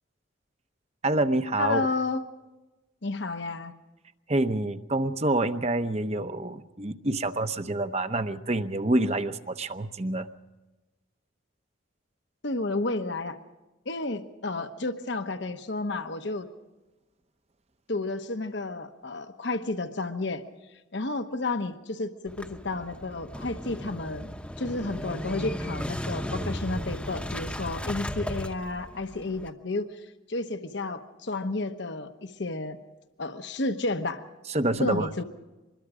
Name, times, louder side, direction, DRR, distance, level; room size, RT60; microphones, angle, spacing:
voice 1, 1.0-1.8 4.3-10.3 34.5-35.2, right 2 dB, 30° right, 10 dB, 0.8 m, -27 dB
voice 2, 1.6-2.2 3.0-3.7 12.4-13.4 13.9-16.5 17.9-20.4 20.7-30.0 30.3-32.8 33.2-34.2 34.8-35.2, left 2 dB, 60° left, 8 dB, 1.1 m, -31 dB
Motorcycle / Engine starting, 22.3-29.5, equal, 5° left, 0.9 m, -35 dB
25.0 x 21.5 x 5.0 m, 1.1 s
head